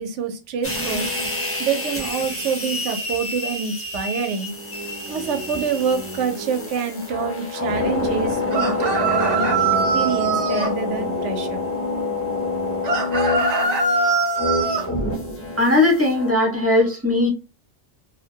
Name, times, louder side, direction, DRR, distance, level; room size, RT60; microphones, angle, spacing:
voice 1, 0.0-4.5 5.1-9.7 9.9-11.6, right 6 dB, 85° right, 0.9 m, -27 dB
sound 1, 0.6-16.3, left 2 dB, 20° left, 0.4 m, -27 dB
sound 2, 8.5-10.7 12.8-14.9, right 3 dB, 45° right, 0.6 m, -21 dB
voice 2, 15.6-17.3, left 2 dB, 15° right, 0.8 m, -18 dB
2.7 x 2.1 x 2.7 m
omnidirectional pair, 1.2 m